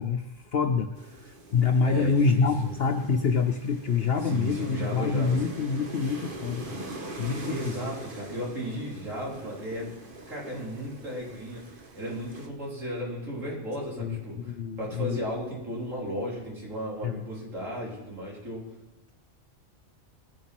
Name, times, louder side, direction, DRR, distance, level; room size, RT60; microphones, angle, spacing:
voice 1, 0.0-6.8 7.2-7.7 14.0-15.2 17.0-17.2, left 5 dB, 55° left, 7 dB, 0.9 m, -26 dB
sound 1, 1.0-12.5, right 2 dB, 45° right, 1.6 m, -43 dB
voice 2, 1.8-2.5 4.2-5.6 7.4-9.9 10.3-11.6 11.9-18.6, equal, 90° right, -4 dB, 4.6 m, -35 dB
20.5 x 7.2 x 6.0 m, 0.96 s
omnidirectional pair, 1.3 m